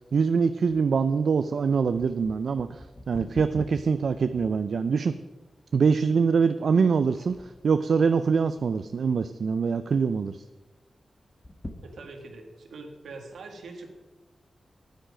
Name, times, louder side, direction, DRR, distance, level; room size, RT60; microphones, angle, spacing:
voice 1, 0.1-5.1 5.7-7.4 7.6-10.4, right 5 dB, 75° right, 11 dB, 0.4 m, -24 dB
sound 1, 0.7-5.1 5.7-5.8 6.5-6.8 7.1-7.7 8.3-9.0 9.3-9.4 9.7-9.8 11.3-12.4 13.0-13.1, left 1 dB, 25° left, 1.3 m, -44 dB
voice 2, 11.8-13.9, right 3 dB, 90° right, 4 dB, 1.6 m, -43 dB
9.9 x 9.1 x 5.0 m, 1.2 s
cardioid pair, 65°, 0 cm